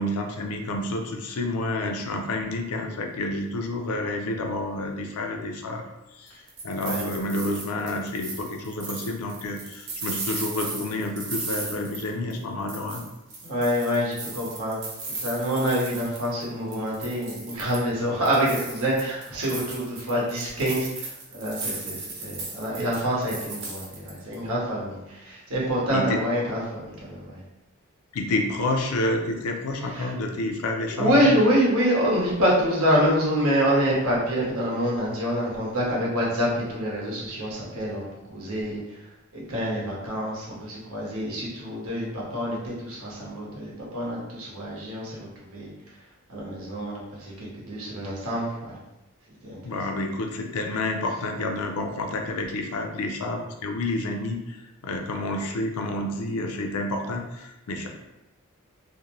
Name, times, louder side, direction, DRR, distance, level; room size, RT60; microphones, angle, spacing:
voice 1, 0.0-5.8 6.1-13.0 25.9-26.2 28.1-31.3 49.6-57.9, left 2 dB, 90° left, 4 dB, 0.4 m, -29 dB
sound 1, 6.3-12.4 12.7-16.4 16.7-17.9 18.2-24.3, right 3 dB, 55° right, 0.7 m, -36 dB
voice 2, 13.4-14.8 15.1-27.4 29.9-30.1 31.0-39.0 39.3-45.7 46.3-48.8 49.4-49.8, equal, 80° right, -4 dB, 0.9 m, -26 dB
2.5 x 2.1 x 2.9 m, 0.94 s
head